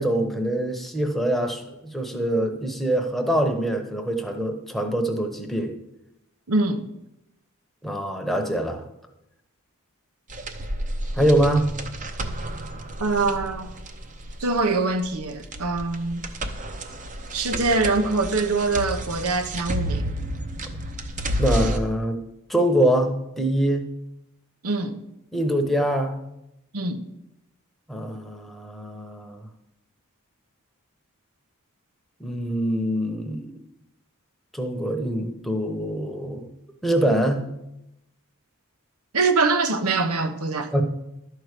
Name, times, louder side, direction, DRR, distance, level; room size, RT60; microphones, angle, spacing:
voice 1, 0.0-5.7 7.8-8.8 11.1-11.7 21.4-22.2 22.5-23.9 25.3-26.2 27.9-29.5 32.2-33.6 34.5-36.5 36.8-37.5 40.7-40.8, right 1 dB, ahead, 0.9 m, -24 dB
voice 2, 6.5-6.9 13.0-13.7 14.4-16.2 17.3-20.1 24.6-25.0 26.7-27.0 39.1-40.7, right 3 dB, 80° right, 0.9 m, -24 dB
sound 1, 10.3-21.8, equal, 35° right, 0.7 m, -31 dB
12.0 x 4.7 x 6.7 m
head